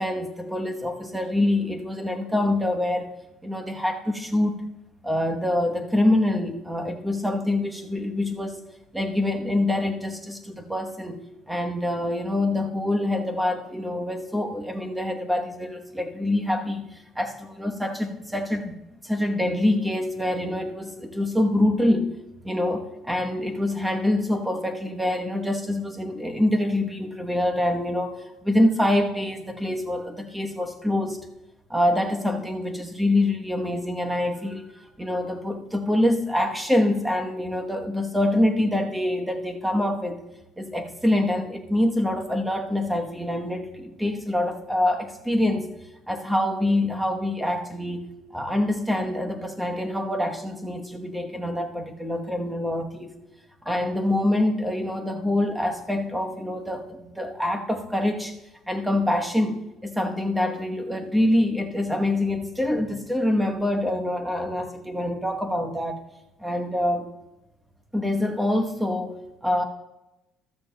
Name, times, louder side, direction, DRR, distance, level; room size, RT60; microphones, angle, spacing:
voice 1, 0.0-3.1 3.4-4.6 5.0-8.6 8.9-18.8 19.0-22.1 22.4-28.2 28.4-31.2 31.7-40.2 40.6-45.7 46.1-53.1 53.6-58.3 58.7-66.0 66.4-67.0 67.9-69.6, left 1 dB, 5° right, 4 dB, 1.0 m, -25 dB
13.5 x 13.0 x 2.2 m, 0.96 s
cardioid pair, 120°, 0 cm